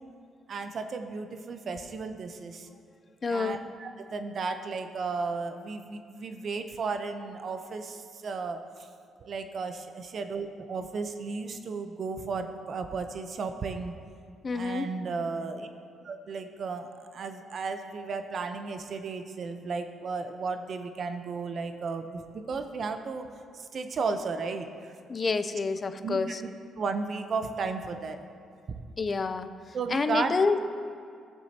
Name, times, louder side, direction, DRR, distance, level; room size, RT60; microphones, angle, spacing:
voice 1, 0.5-2.7 3.3-8.9 9.2-13.9 14.5-15.7 16.0-23.3 23.5-24.9 26.0-26.2 26.7-28.2 28.7-28.8 29.7-30.4, right 4 dB, 55° right, 7 dB, 0.7 m, -34 dB
voice 2, 3.2-3.6 14.4-14.9 25.1-26.4 29.0-30.7, left 4 dB, 35° left, 11 dB, 0.5 m, -28 dB
16.0 x 7.2 x 2.8 m, 2.4 s
cardioid pair, 90°, 0 cm